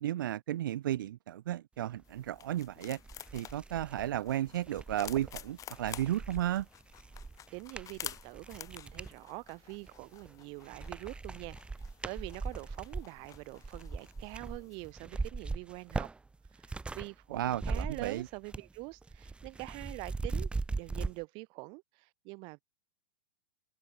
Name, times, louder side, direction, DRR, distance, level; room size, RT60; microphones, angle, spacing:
voice 1, 0.0-3.0 3.3-6.7 17.3-18.3, right 12 dB, 70° right, 1.8 m, -34 dB
sound 1, 2.0-14.9, left 10 dB, 30° left, 5.1 m, -50 dB
sound 2, 2.5-2.6 3.0-9.2 9.7-10.3 10.6-17.1 17.4-18.8 19.0-21.1, right 3 dB, 10° right, 1.0 m, -40 dB
voice 2, 7.5-11.6 12.0-16.1 16.5-22.6, right 30 dB, 50° right, 6.1 m, -45 dB
hypercardioid pair, 110°, 11 cm